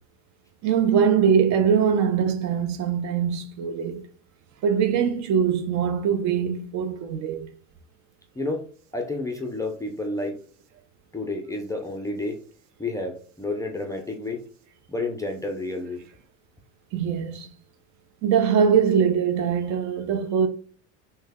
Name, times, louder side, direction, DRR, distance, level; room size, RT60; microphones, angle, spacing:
voice 1, 0.6-4.1 4.6-7.5 16.9-17.5 18.2-20.5, right 7 dB, 50° right, 0.5 m, -22 dB
voice 2, 8.9-10.4 11.1-12.4 12.8-14.4 14.9-16.0, left 2 dB, 10° left, 0.4 m, -30 dB
3.1 x 2.1 x 3.4 m
supercardioid pair, 105°, 38 cm